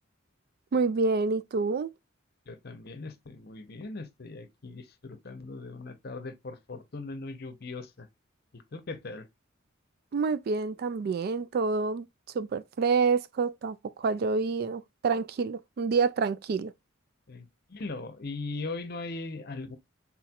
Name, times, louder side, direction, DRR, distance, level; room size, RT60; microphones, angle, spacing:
voice 1, 0.7-1.9 10.1-12.1 12.3-16.7, right 4 dB, 50° right, 0.3 m, -27 dB
voice 2, 2.5-8.1 8.5-9.3 17.3-19.8, left 3 dB, 50° left, 0.7 m, -39 dB
4.3 x 4.1 x 2.3 m
head